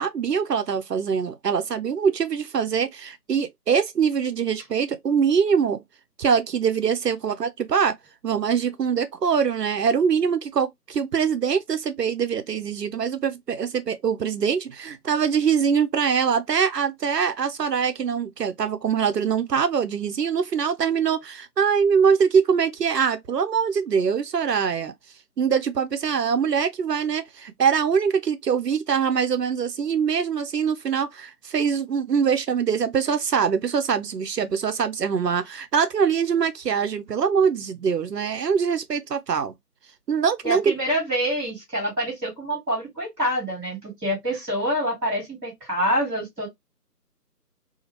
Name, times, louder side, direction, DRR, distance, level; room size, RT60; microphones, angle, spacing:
voice 1, 0.0-5.8 6.2-7.9 8.2-24.9 25.4-39.5 40.1-40.7, right 6 dB, 80° right, 0.6 m, -23 dB
voice 2, 40.4-46.5, equal, ahead, 1.2 m, -26 dB
2.8 x 2.4 x 2.9 m
figure-of-eight pair, 150°, 48 cm